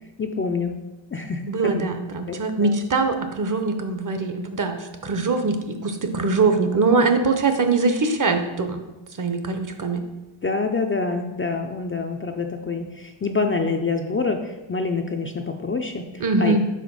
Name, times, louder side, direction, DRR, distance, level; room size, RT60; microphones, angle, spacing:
voice 1, 0.2-0.8 1.1-1.9 2.3-2.7 10.4-16.6, left 4 dB, 30° left, 4 dB, 0.4 m, -26 dB
voice 2, 1.5-8.8 9.2-10.0 16.2-16.6, right 3 dB, 40° right, 7 dB, 0.7 m, -22 dB
5.0 x 3.9 x 5.2 m, 1.1 s
wide cardioid pair, 85°, 49 cm